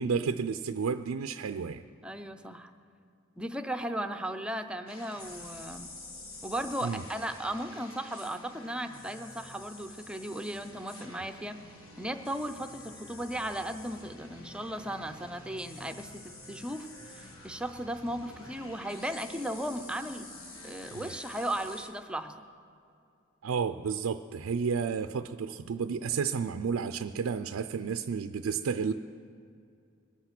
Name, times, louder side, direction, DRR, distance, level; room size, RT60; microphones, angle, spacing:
voice 1, 0.0-1.8 6.8-7.0 20.9-21.1 23.4-28.9, right 6 dB, 85° right, 8 dB, 0.4 m, -31 dB
voice 2, 2.0-2.7 3.4-5.9 6.4-11.6 12.0-20.3 20.6-22.3, right 1 dB, 5° right, 7 dB, 0.5 m, -36 dB
sound 1, 4.9-21.9, left 2 dB, 70° left, 1.6 m, -48 dB
21.5 x 8.2 x 6.0 m, 2.4 s
head